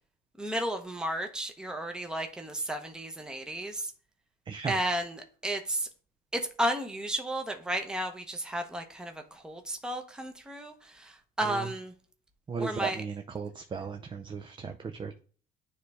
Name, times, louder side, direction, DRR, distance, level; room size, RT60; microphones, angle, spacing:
voice 1, 0.4-3.9 4.7-5.9 6.3-9.1 9.4-10.7 11.0-11.1 11.4-11.9 12.6-13.0, right 1 dB, 5° right, 0.8 m, -33 dB
voice 2, 4.5-4.8 11.4-11.7 12.5-15.2, right 5 dB, 30° right, 0.5 m, -36 dB
9.3 x 3.2 x 3.4 m
cardioid pair, 110°, 17 cm